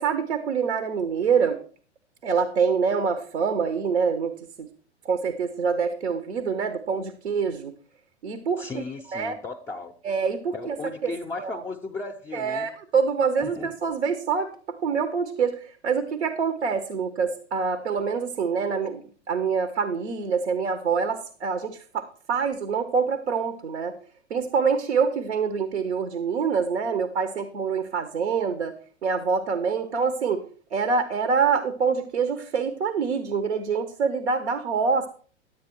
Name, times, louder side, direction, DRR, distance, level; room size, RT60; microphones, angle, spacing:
voice 1, 0.0-1.6 2.2-4.7 5.0-7.7 8.2-8.6 9.1-9.3 10.0-10.8 11.0-11.1 11.4-11.5 12.3-24.0 24.3-28.7 29.0-30.4 30.7-35.1, right 5 dB, 75° right, 10 dB, 1.1 m, -25 dB
voice 2, 8.6-10.0 10.5-12.7 13.4-13.7, left 3 dB, 10° left, 1 dB, 0.5 m, -35 dB
11.5 x 8.2 x 4.5 m, 0.42 s
figure-of-eight pair, 100°, 34 cm